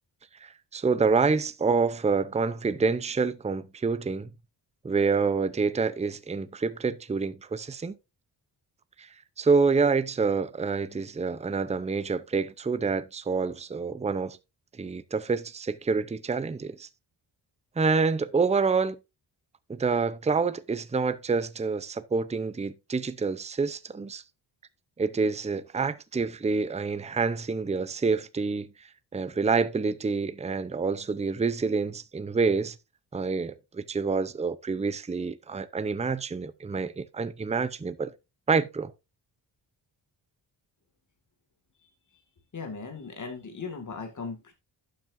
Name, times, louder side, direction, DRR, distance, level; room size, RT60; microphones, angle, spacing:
voice 1, 0.4-4.3 4.8-8.0 9.0-9.1 9.4-14.4 14.8-16.9 17.8-19.0 19.7-24.2 25.0-28.7 29.1-32.8 33.1-38.1 38.5-38.9, right 4 dB, 15° right, 0.6 m, -27 dB
voice 2, 42.5-44.5, left 4 dB, 40° left, 2.1 m, -38 dB
11.5 x 7.7 x 2.6 m
cardioid pair, 85°, 45 cm